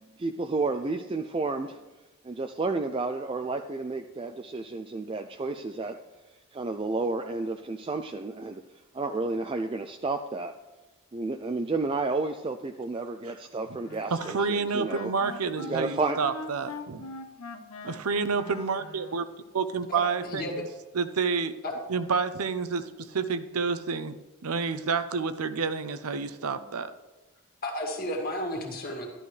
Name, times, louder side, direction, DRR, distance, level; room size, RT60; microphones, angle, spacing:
voice 1, 0.2-1.8 2.2-6.0 6.5-8.6 8.9-10.5 11.1-15.1 15.6-16.2, right 3 dB, 25° right, 4 dB, 0.3 m, -31 dB
Wind instrument woodwind instrument, 13.9-19.2, left 3 dB, 85° left, 0.9 m, -42 dB
voice 2, 14.1-17.0 17.8-19.3 19.5-20.4 20.9-21.5 21.9-22.8 23.1-24.2 24.4-26.9, right 5 dB, 85° right, 11 dB, 0.7 m, -29 dB
voice 3, 19.9-20.6 21.6-21.7 27.6-29.1, left 1 dB, 40° left, 1 dB, 1.9 m, -33 dB
12.5 x 11.0 x 3.3 m, 1.1 s
head